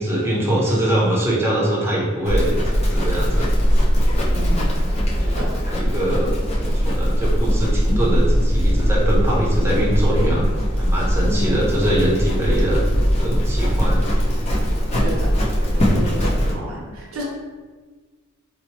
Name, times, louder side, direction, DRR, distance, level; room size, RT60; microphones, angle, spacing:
voice 1, 0.0-3.5 5.6-10.5 10.8-12.8 13.2-14.1, right 1 dB, 10° right, -5 dB, 0.7 m, -23 dB
Livestock farm animals working animals, 2.2-16.5, equal, 30° left, 0.5 m, -20 dB
voice 2, 4.3-4.8 5.2-5.5 11.2-11.6 15.0-15.3 15.7-17.2, equal, 90° right, -3 dB, 0.7 m, -31 dB
4.0 x 2.0 x 2.9 m, 1.4 s
head